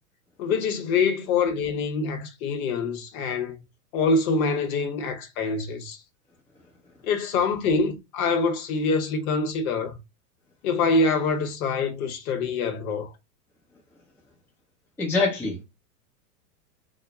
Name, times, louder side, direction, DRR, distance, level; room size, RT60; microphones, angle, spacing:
voice 1, 0.4-3.6 3.9-6.0 7.0-10.0 10.6-13.1, left 4 dB, 60° left, 0.8 m, -25 dB
voice 2, 15.0-15.6, left 3 dB, 5° left, 0.5 m, -24 dB
2.3 x 2.0 x 2.8 m
hypercardioid pair, 115°, 48 cm